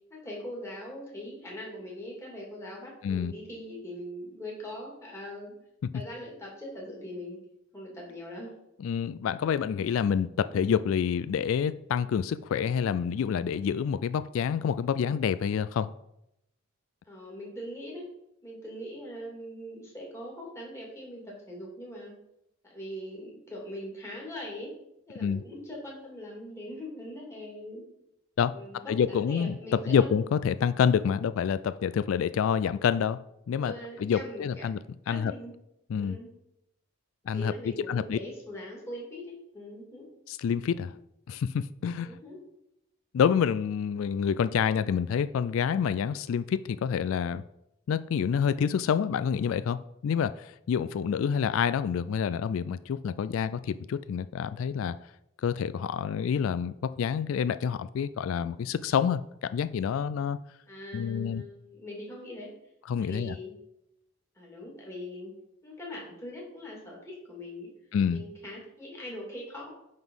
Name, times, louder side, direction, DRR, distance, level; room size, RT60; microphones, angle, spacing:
voice 1, 0.1-5.6 5.9-7.4 7.7-8.5 17.0-18.1 18.4-22.1 22.6-24.8 25.1-27.8 28.5-30.1 33.6-34.6 35.1-35.5 36.0-36.3 37.3-40.1 42.1-42.4 60.7-62.5 63.0-63.5 64.4-65.3 65.6-67.7 68.1-69.7, left 1 dB, 15° left, -3 dB, 2.5 m, -41 dB
voice 2, 8.8-15.9 25.2-25.4 28.4-28.5 28.9-29.6 29.9-33.2 33.5-33.7 34.0-34.8 35.1-35.3 35.9-36.2 37.3-37.5 37.8-38.2 40.3-41.0 41.3-42.1 43.1-47.4 47.9-55.0 55.4-60.4 60.9-61.4 62.9-63.4 67.9-68.2, left 7 dB, 75° left, 14 dB, 0.3 m, -27 dB
10.5 x 4.0 x 5.5 m, 0.82 s
head